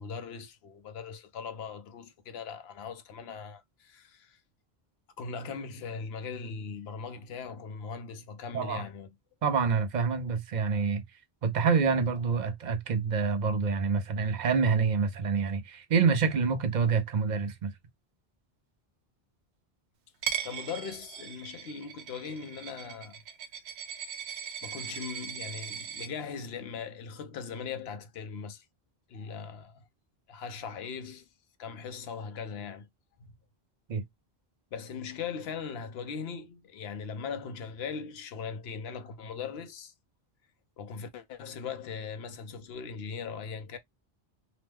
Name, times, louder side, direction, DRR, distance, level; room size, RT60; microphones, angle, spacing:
voice 1, 0.0-4.4 5.2-9.1 20.4-23.2 24.6-28.6 29.1-29.8 30.3-31.3 31.6-32.9 33.2-33.4 34.7-39.9 40.8-43.8, left 6 dB, 75° left, 0.9 m, -39 dB
voice 2, 9.4-11.0 11.4-17.7 33.9-34.0, right 5 dB, 50° right, 0.6 m, -27 dB
Coin (dropping), 20.2-26.1, right 8 dB, 85° right, 0.9 m, -39 dB
2.9 x 2.1 x 3.2 m
omnidirectional pair, 1.1 m